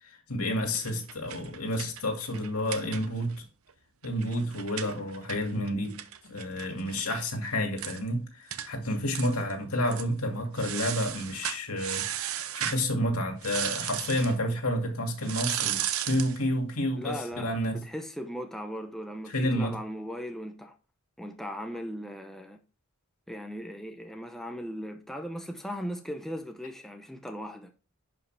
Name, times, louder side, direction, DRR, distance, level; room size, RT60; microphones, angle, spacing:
voice 1, 0.0-3.4 4.0-6.0 6.3-17.8 19.3-19.8, equal, 85° left, 2.3 m, -30 dB
sound 1, 0.7-3.4 3.7-3.8 4.0-7.2 7.5-7.6 7.8-8.0 8.5-8.7 9.1-9.5 9.9-10.1 10.6-12.8 13.4-14.3 15.2-16.4, right 11 dB, 80° right, 0.7 m, -35 dB
voice 2, 16.9-20.7 21.2-22.6 23.3-27.7, equal, ahead, 0.7 m, -38 dB
11.0 x 5.0 x 3.4 m
head